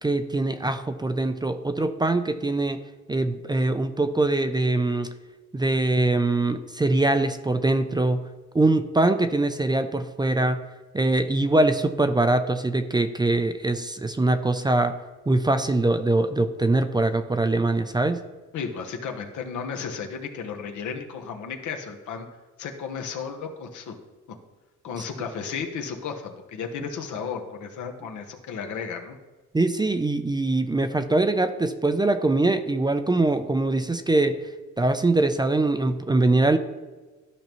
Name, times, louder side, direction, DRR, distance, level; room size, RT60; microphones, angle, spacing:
voice 1, 0.0-2.8 3.1-5.1 5.5-8.3 8.5-10.6 10.9-15.0 15.3-18.2 29.5-34.4 34.8-36.6, right 2 dB, 15° right, 9 dB, 0.5 m, -23 dB
voice 2, 18.5-22.3 22.6-24.0 24.8-29.2, left 6 dB, 75° left, 4 dB, 1.1 m, -34 dB
13.0 x 5.2 x 3.0 m, 1.3 s
cardioid pair, 90°, 30 cm